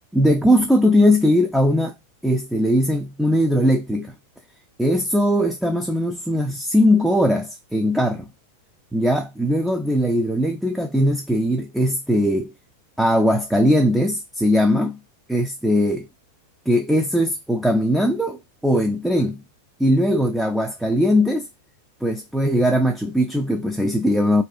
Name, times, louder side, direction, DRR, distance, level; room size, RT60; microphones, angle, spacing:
voice 1, 0.1-1.9 2.2-4.1 4.8-8.3 8.9-12.5 13.0-15.0 15.3-16.1 16.7-19.4 19.8-21.5 22.0-24.4, equal, 5° right, 0.3 m, -20 dB
2.6 x 2.3 x 2.3 m
figure-of-eight pair, 90°, 0 cm